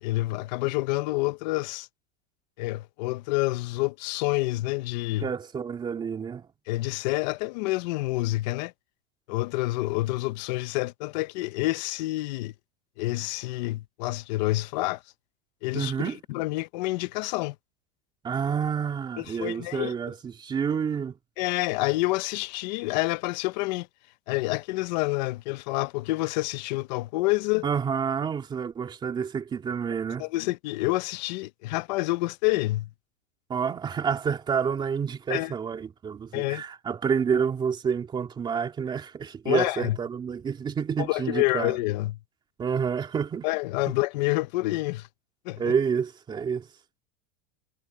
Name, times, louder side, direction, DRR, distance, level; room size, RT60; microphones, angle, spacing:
voice 1, 0.0-1.9 2.6-5.3 6.7-8.7 9.3-12.5 13.0-15.0 15.6-15.9 16.3-17.6 19.2-19.9 21.4-23.9 24.3-27.7 30.2-32.9 35.3-35.5 36.3-36.6 39.4-40.0 41.0-42.2 43.4-45.1 45.4-45.7, left 20 dB, 45° left, 0.8 m, -28 dB
voice 2, 5.2-6.5 15.7-16.2 18.2-21.2 27.6-30.2 33.5-41.8 42.6-43.5 45.6-46.7, right 6 dB, 15° right, 2.9 m, -29 dB
supercardioid pair, 180°, 32 cm